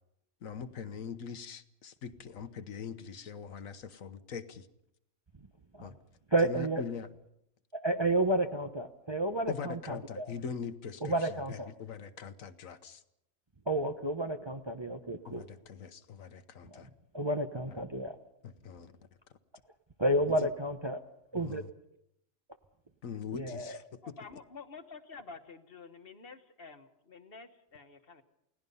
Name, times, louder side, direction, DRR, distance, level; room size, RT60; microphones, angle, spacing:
voice 1, 0.4-4.7 5.8-5.9 6.4-7.1 9.5-13.0 15.2-16.9 17.7-17.8 18.4-18.9 20.4-20.5 21.3-21.7 23.0-24.1, left 6 dB, 70° left, 11 dB, 1.4 m, -42 dB
voice 2, 6.3-6.8 7.7-10.3 11.0-11.7 13.7-15.4 16.7-16.8 17.1-18.2 20.0-21.0 21.3-21.6 23.3-23.8, right 1 dB, 25° right, 6 dB, 0.8 m, -31 dB
voice 3, 24.0-28.2, left 4 dB, 45° left, 8 dB, 1.5 m, -49 dB
29.0 x 18.0 x 5.5 m, 0.80 s
omnidirectional pair, 1.5 m